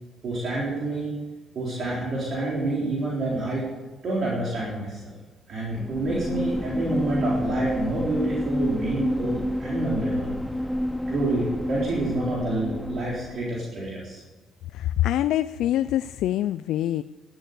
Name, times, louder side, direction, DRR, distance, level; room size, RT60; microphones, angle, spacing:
voice 1, 0.2-1.1 1.5-3.6 4.0-5.2 5.5-10.3 11.1-14.2, right 2 dB, 60° right, -5 dB, 4.0 m, -28 dB
sound 1, 5.7-13.6, left 1 dB, ahead, 0.7 m, -29 dB
voice 2, 14.7-17.0, left 13 dB, 85° left, 13 dB, 0.3 m, -25 dB
13.5 x 12.5 x 6.8 m, 1.3 s
cardioid pair, 90°, 0 cm